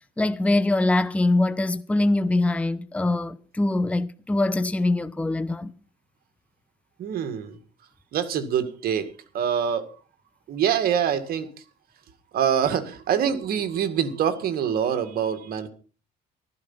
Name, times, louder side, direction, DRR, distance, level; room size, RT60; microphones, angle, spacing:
voice 1, 0.2-5.7, left 2 dB, 5° left, 0.7 m, -23 dB
voice 2, 7.0-7.6 8.1-9.9 10.5-11.6 12.3-15.7, right 8 dB, 65° right, 2.0 m, -25 dB
15.0 x 12.5 x 5.5 m
cardioid pair, 110°, 17 cm